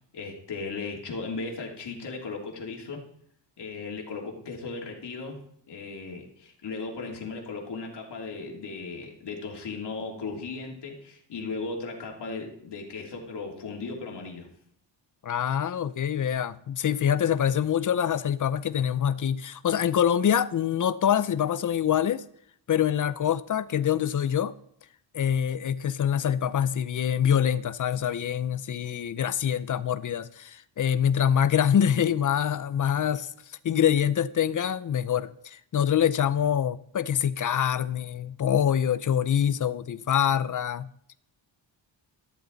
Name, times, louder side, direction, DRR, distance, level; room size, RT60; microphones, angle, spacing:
voice 1, 0.1-3.0 3.6-5.4 5.7-14.5, left 4 dB, 65° left, 3.1 m, -36 dB
voice 2, 15.2-22.2 22.7-24.5 25.1-33.3 33.6-40.9, left 9 dB, 45° left, 0.6 m, -25 dB
13.5 x 12.5 x 4.0 m
wide cardioid pair, 145°, 45 cm